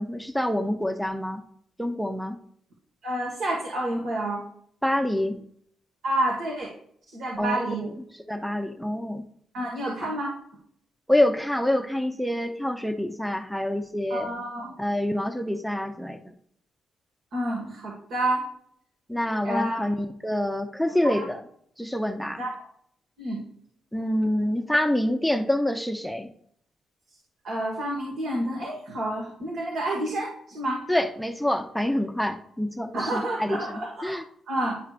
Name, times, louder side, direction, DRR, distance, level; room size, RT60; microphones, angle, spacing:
voice 1, 0.0-1.4 1.8-2.4 4.8-5.4 7.4-8.0 8.3-9.2 10.0-10.2 11.1-14.3 14.8-16.2 19.1-21.4 21.8-22.4 23.9-26.3 30.9-34.2, left 1 dB, ahead, 5 dB, 0.6 m, -26 dB
voice 2, 3.0-4.4 6.0-6.7 7.1-7.8 9.5-10.3 14.1-14.8 17.3-18.4 19.4-19.8 21.0-21.2 22.4-22.7 23.2-23.4 27.4-30.8 32.9-34.8, right 1 dB, 70° right, -2 dB, 1.6 m, -29 dB
10.0 x 4.8 x 2.5 m, 0.67 s
cardioid pair, 90°, 0 cm